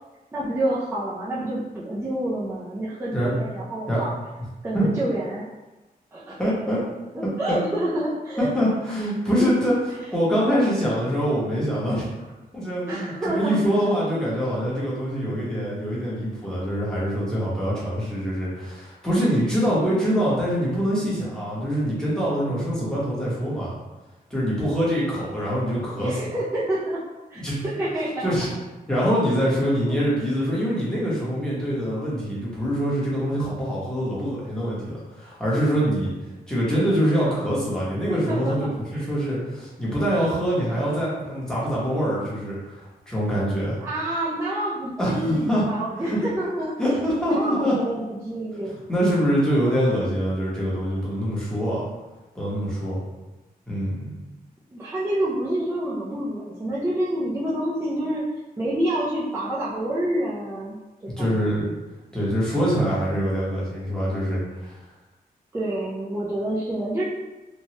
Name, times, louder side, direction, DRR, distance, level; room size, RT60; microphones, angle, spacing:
voice 1, 0.3-4.1 4.6-5.5 6.1-6.4 7.1-8.5 9.4-9.5 12.8-13.8 26.0-27.0 27.3-28.3 29.9-30.0 38.1-39.1 43.8-46.8 47.2-48.8 54.7-58.2 58.6-60.8 61.0-61.5 65.5-67.0, right 1 dB, 15° right, -7 dB, 0.4 m, -28 dB
voice 2, 6.4-6.8 7.5-7.6 8.4-9.8 10.1-12.1 12.5-23.7 24.3-26.2 27.3-27.6 28.2-28.5 28.9-36.1 36.5-43.8 45.0-45.6 46.0-46.2 46.8-47.7 48.7-51.8 52.3-53.0 53.7-54.1 61.0-61.7 62.1-64.8, equal, 5° left, -8 dB, 0.9 m, -24 dB
3.0 x 2.2 x 2.8 m, 1.1 s
wide cardioid pair, 155°, 16 cm